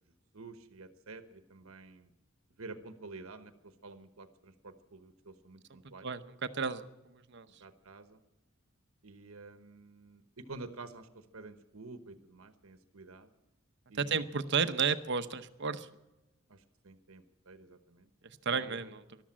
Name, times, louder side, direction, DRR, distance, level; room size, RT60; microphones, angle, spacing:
voice 1, 0.3-2.1 2.6-6.1 7.6-8.2 9.0-13.3 13.9-14.3 16.5-18.1 18.5-18.9, right 3 dB, 80° right, 9 dB, 1.1 m, -50 dB
voice 2, 6.0-6.9 7.3-7.5 14.0-15.9 18.4-19.0, right 5 dB, 55° right, 11 dB, 0.8 m, -32 dB
13.5 x 12.0 x 8.7 m, 1.0 s
head